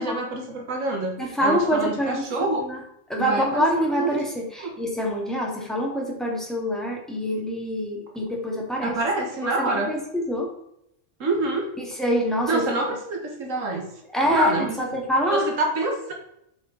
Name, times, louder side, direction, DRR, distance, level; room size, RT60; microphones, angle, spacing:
voice 1, 0.0-2.7 3.2-3.7 3.9-4.2 4.6-4.7 8.8-9.9 11.2-11.7 12.5-13.9 14.3-14.8 15.3-16.1, right 2 dB, 90° right, 2 dB, 1.7 m, -26 dB
voice 2, 1.2-2.8 3.1-9.0 9.4-10.5 11.8-12.6 14.1-15.5, equal, ahead, -2 dB, 2.0 m, -25 dB
7.5 x 6.1 x 3.9 m, 0.77 s
omnidirectional pair, 1.3 m